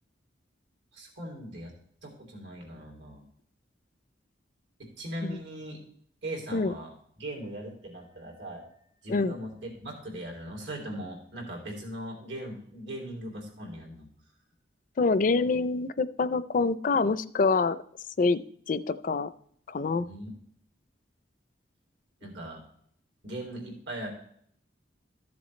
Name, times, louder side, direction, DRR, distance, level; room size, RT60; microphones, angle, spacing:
voice 1, 0.9-1.7 2.0-3.2 4.8-5.8 6.2-6.9 7.2-8.6 9.0-14.1 20.0-20.3 22.2-22.6 23.2-24.1, right 1 dB, 85° right, 0 dB, 3.2 m, -39 dB
voice 2, 15.0-17.8 18.2-18.4 18.7-19.3 19.7-20.1, left 4 dB, 45° left, 15 dB, 0.4 m, -26 dB
13.5 x 7.2 x 3.2 m, 0.64 s
head